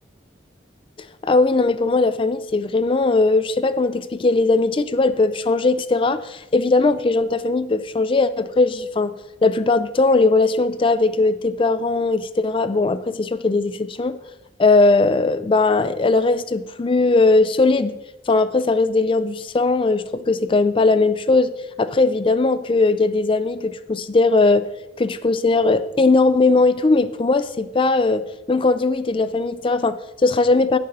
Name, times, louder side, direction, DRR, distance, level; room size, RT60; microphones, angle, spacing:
voice 1, 1.2-9.1 9.4-14.2 14.6-17.9 18.3-21.5 21.8-24.7 25.0-30.8, left 3 dB, 30° left, 13 dB, 0.4 m, -19 dB
9.1 x 6.6 x 5.4 m, 0.95 s
head